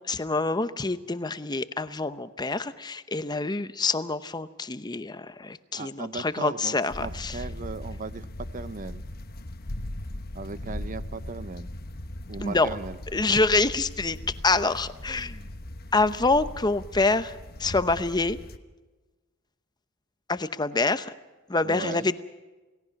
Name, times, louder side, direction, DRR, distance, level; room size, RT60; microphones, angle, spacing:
voice 1, 0.1-7.4 12.4-12.7 13.1-14.2 14.4-15.4 15.9-18.4 20.3-21.1 21.5-22.2, left 3 dB, 20° left, 12 dB, 0.8 m, -26 dB
voice 2, 5.7-6.7 7.0-9.0 10.3-11.7 12.3-13.0 13.3-13.4 21.6-22.1, right 4 dB, 40° right, 15 dB, 0.6 m, -37 dB
sound 1, 6.9-18.6, left 1 dB, 45° left, 1.2 m, -39 dB
29.0 x 18.0 x 5.9 m, 1.2 s
head